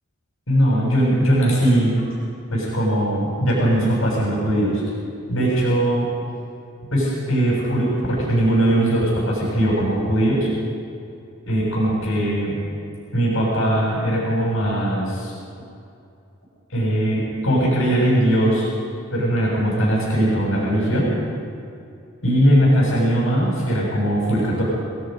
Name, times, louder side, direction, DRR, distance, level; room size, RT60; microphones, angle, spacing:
voice 1, 0.5-2.0 2.5-4.8 5.3-6.1 6.9-10.5 11.5-12.5 13.1-15.3 16.7-18.7 19.1-21.1 22.2-24.6, right 1 dB, 70° left, -5 dB, 6.9 m, -20 dB
28.0 x 19.0 x 5.3 m, 2.5 s
head